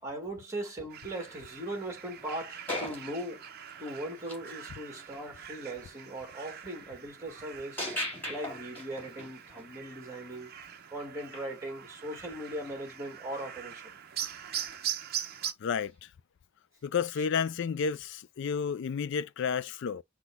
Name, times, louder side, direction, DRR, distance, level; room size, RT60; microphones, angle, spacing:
voice 1, 0.0-3.5 3.8-10.5 10.9-13.9, right 1 dB, 15° right, 1.9 m, -39 dB
sound 1, 0.9-15.5, right 9 dB, 45° right, 0.6 m, -42 dB
sound 2, 2.2-2.3 2.7-4.6 4.9-5.2 7.8-9.7 11.3-11.5 15.8-15.9, left 1 dB, 10° left, 2.3 m, -37 dB
voice 2, 15.6-16.1 16.8-20.0, left 6 dB, 55° left, 0.3 m, -31 dB
6.0 x 2.3 x 3.4 m
head